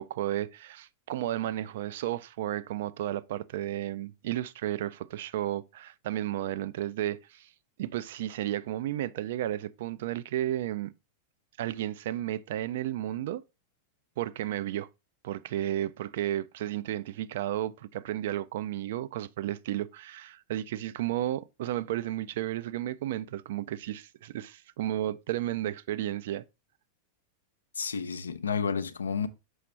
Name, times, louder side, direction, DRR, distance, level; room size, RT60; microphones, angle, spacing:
voice 1, 0.0-7.5 7.8-10.9 11.6-13.4 14.2-14.9 15.2-26.4, right 13 dB, 55° right, 0.3 m, -33 dB
voice 2, 27.7-29.3, left 6 dB, 70° left, 0.5 m, -31 dB
6.2 x 5.8 x 3.1 m
figure-of-eight pair, 90°, 0 cm